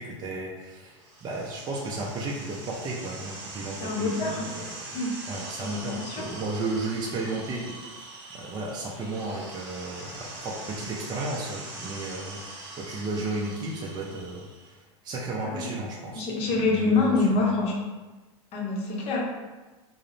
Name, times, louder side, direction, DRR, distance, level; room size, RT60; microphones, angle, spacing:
voice 1, 0.0-4.7 5.3-8.0 8.3-17.5, right 2 dB, 25° right, -3 dB, 0.4 m, -34 dB
sound 1, 1.0-14.7, right 2 dB, 50° right, 1.1 m, -42 dB
voice 2, 3.8-4.5 4.9-5.1 5.6-6.2 15.4-15.7 16.1-17.8 18.5-19.2, left 3 dB, 40° left, -2 dB, 0.7 m, -26 dB
2.3 x 2.0 x 3.0 m, 1.2 s
hypercardioid pair, 110°, 16 cm